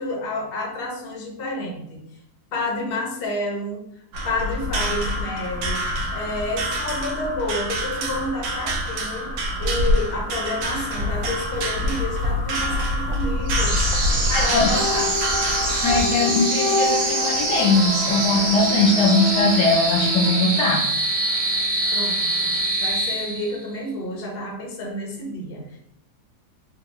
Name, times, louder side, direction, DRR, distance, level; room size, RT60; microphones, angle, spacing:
voice 1, 0.0-2.0 2.5-3.8 4.2-5.8 6.1-9.3 9.6-13.8 14.3-15.1 21.9-22.5 22.8-25.8, left 2 dB, 60° left, -1 dB, 0.6 m, -29 dB
sound 1, 4.1-16.0, equal, 80° right, 1.2 m, -26 dB
sound 2, 13.5-23.7, right 2 dB, 60° right, 1.2 m, -24 dB
voice 2, 14.3-14.7 15.8-20.8, left 3 dB, 75° left, 2 dB, 1.1 m, -20 dB
sound 3, 14.7-20.4, left 2 dB, 35° right, 0.6 m, -28 dB
3.6 x 2.0 x 2.9 m, 0.72 s
omnidirectional pair, 1.9 m